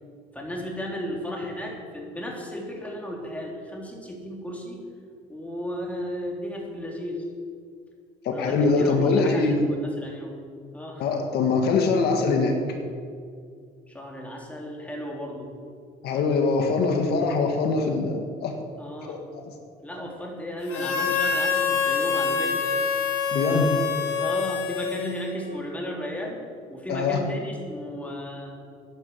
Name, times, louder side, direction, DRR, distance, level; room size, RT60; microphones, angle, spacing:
voice 1, 0.3-4.8 5.3-7.2 8.3-10.3 10.7-11.1 13.9-15.6 18.8-19.2 19.8-22.7 24.1-26.4 26.7-28.6, equal, 10° left, -1 dB, 3.2 m, -34 dB
voice 2, 8.2-9.6 11.0-12.5 16.0-18.5 19.1-19.2 19.4-19.5 23.3-23.7 26.9-27.2, left 4 dB, 70° left, 4 dB, 1.7 m, -23 dB
Harmonica, 20.7-25.5, left 5 dB, 85° left, 1.7 m, -26 dB
10.0 x 10.0 x 7.8 m, 2.2 s
cardioid pair, 110°, 17 cm